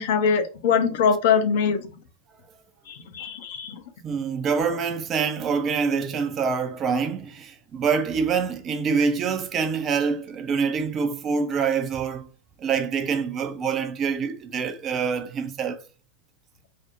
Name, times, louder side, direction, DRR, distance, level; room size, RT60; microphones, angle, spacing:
voice 1, 0.0-1.8 2.9-3.8, left 6 dB, 50° left, 0.5 m, -22 dB
voice 2, 4.0-12.3 12.6-15.8, right 5 dB, 30° right, 0.3 m, -25 dB
2.4 x 2.0 x 2.7 m
figure-of-eight pair, 90°, 0 cm